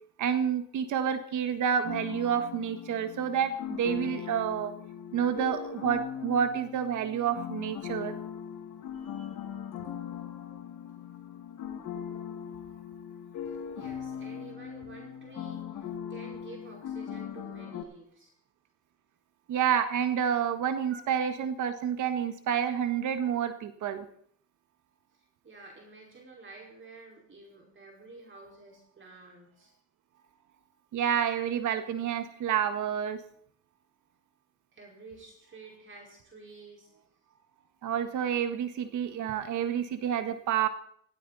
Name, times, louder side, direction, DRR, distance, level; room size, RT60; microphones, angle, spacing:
voice 1, 0.2-4.7 5.1-8.2 19.5-24.0 30.9-33.2 37.8-40.7, right 8 dB, 75° right, 9 dB, 1.7 m, -29 dB
sound 1, 1.8-17.8, left 8 dB, 85° left, 2.1 m, -40 dB
voice 2, 8.9-9.5 13.4-18.3 20.9-21.1 25.1-29.7 34.7-36.9, right 3 dB, 40° right, -1 dB, 5.1 m, -50 dB
18.0 x 16.5 x 4.2 m, 0.64 s
cardioid pair, 90°, 30 cm